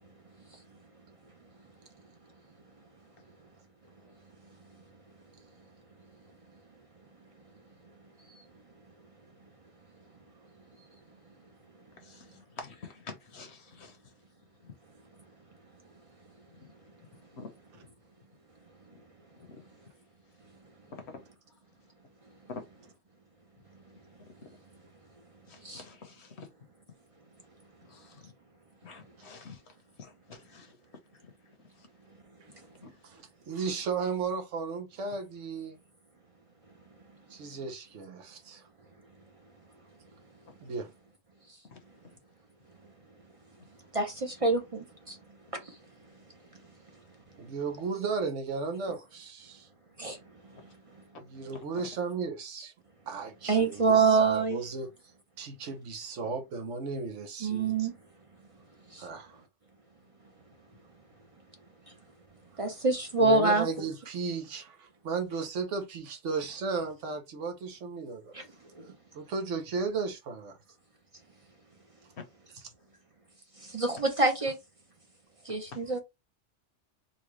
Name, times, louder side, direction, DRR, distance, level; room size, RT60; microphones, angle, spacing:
voice 1, 12.0-14.1 14.6-14.7 16.6-16.7 17.4-17.5 18.9-19.0 19.4-19.6 20.9-21.2 22.5-22.6 25.5-26.5 27.9-28.3 28.8-30.8 31.2-31.3 31.8-31.9 32.8-32.9 41.6-41.8 50.5-50.6 51.5-51.6 72.2-72.3 75.5-75.8, left 4 dB, 65° left, 1.1 m, -47 dB
voice 2, 33.0-35.8 37.3-38.7 40.6-40.9 47.4-49.7 51.3-52.7 53.1-54.9 55.4-57.9 59.0-59.4 62.8-62.9 63.2-68.3 69.1-70.6, right 4 dB, 85° right, 1.1 m, -35 dB
voice 3, 43.9-45.2 50.0-50.2 53.5-54.6 57.4-57.9 58.9-59.0 62.6-63.7 68.3-68.4 68.8-68.9 73.6-74.6 75.5-76.0, right 4 dB, 35° right, 0.6 m, -26 dB
4.0 x 2.3 x 3.1 m
omnidirectional pair, 1.2 m